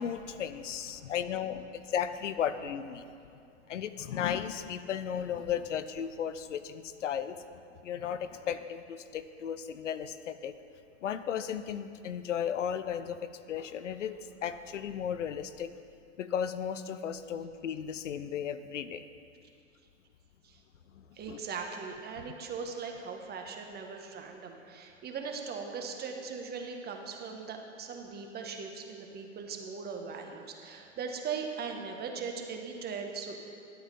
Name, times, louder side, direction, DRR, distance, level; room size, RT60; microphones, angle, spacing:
voice 1, 0.0-3.1 3.7-7.4 7.8-10.5 11.0-15.7 16.2-19.0 21.0-21.4, left 8 dB, 85° left, 12 dB, 0.7 m, -35 dB
voice 2, 21.1-33.4, right 5 dB, 25° right, 3 dB, 1.4 m, -39 dB
11.5 x 8.7 x 5.4 m, 2.4 s
hypercardioid pair, 105°, 36 cm